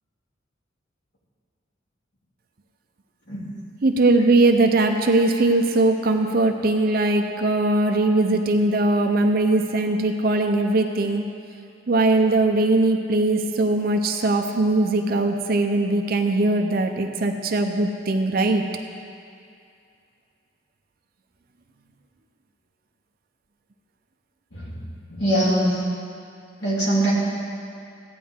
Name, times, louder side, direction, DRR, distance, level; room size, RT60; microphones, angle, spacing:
voice 1, 3.8-11.2 11.9-18.6, right 2 dB, 50° right, 4 dB, 0.5 m, -20 dB
voice 2, 25.1-25.8 26.6-27.1, right 1 dB, 65° left, -6 dB, 2.7 m, -22 dB
14.5 x 9.4 x 3.6 m, 2.4 s
head